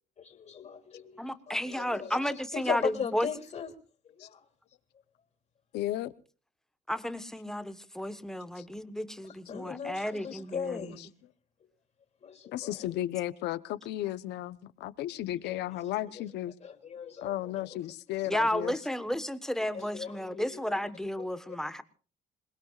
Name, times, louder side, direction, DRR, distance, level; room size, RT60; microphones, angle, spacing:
voice 1, 0.2-3.7 4.0-4.4 9.2-11.1 12.2-13.0 15.4-16.2 16.6-17.8 19.7-20.6 21.2-21.3, left 7 dB, 40° left, 3.0 m, -39 dB
voice 2, 1.2-3.3 6.9-10.9 18.3-21.8, equal, 5° left, 1.3 m, -33 dB
voice 3, 5.7-6.1 8.6-8.7 10.3-10.4 12.5-16.5 17.2-18.8, left 14 dB, 80° left, 1.0 m, -34 dB
27.5 x 20.0 x 2.5 m
cardioid pair, 110°, 17 cm